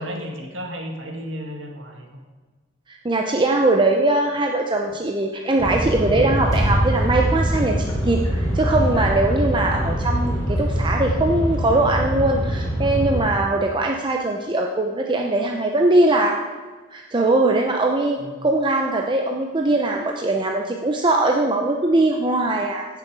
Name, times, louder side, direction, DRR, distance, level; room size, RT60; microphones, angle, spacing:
voice 1, 0.0-2.2 18.2-18.5, equal, 75° right, 2 dB, 1.8 m, -33 dB
voice 2, 2.9-16.4 16.9-22.9, right 2 dB, 25° right, 1 dB, 0.7 m, -21 dB
sound 1, 5.6-13.2, equal, 20° left, 2.5 m, -23 dB
15.5 x 6.9 x 4.7 m, 1.3 s
head